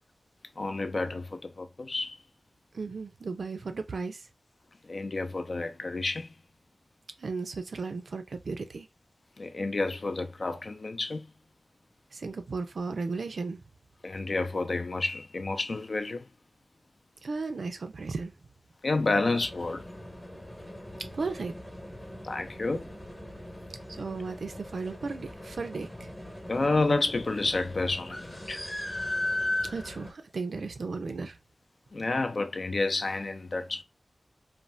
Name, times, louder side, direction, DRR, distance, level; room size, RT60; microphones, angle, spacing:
voice 1, 0.6-2.2 4.8-6.3 9.4-11.3 14.0-16.3 18.8-19.9 22.2-22.9 26.5-28.6 31.9-33.8, left 3 dB, 65° left, 0.4 m, -30 dB
voice 2, 2.7-4.3 7.2-8.9 12.1-13.6 17.2-18.3 21.1-21.5 23.9-26.1 29.7-31.4, right 4 dB, 85° right, 0.5 m, -35 dB
sound 1, 19.4-30.1, left 1 dB, 20° left, 0.9 m, -38 dB
2.6 x 2.1 x 3.2 m
wide cardioid pair, 65°, 0 cm